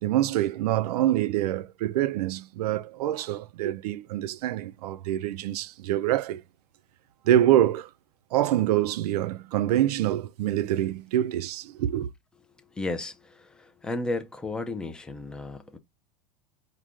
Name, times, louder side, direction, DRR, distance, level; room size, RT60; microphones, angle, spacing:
voice 1, 0.0-6.4 7.3-7.9 8.3-12.1, right 12 dB, 90° right, 0.5 m, -25 dB
voice 2, 12.7-15.8, left 2 dB, 5° left, 0.3 m, -33 dB
4.8 x 2.2 x 3.6 m
supercardioid pair, 150°, 19 cm